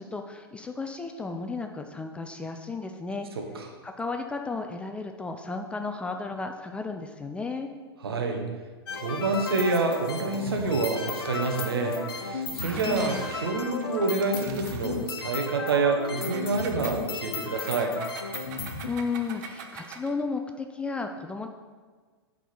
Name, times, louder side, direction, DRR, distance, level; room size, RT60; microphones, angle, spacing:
voice 1, 0.0-3.3 3.8-7.7 12.6-13.2 18.5-21.5, left 4 dB, 10° left, 5 dB, 0.4 m, -34 dB
voice 2, 8.0-8.5 8.9-17.9, right 3 dB, 65° right, 3 dB, 1.2 m, -27 dB
sound 1, 8.9-18.9, left 4 dB, 60° left, 1.0 m, -34 dB
Engine, 12.5-15.3 16.1-20.2, right 6 dB, 45° right, 0.8 m, -44 dB
8.0 x 4.0 x 6.2 m, 1.5 s
figure-of-eight pair, 105°, 14 cm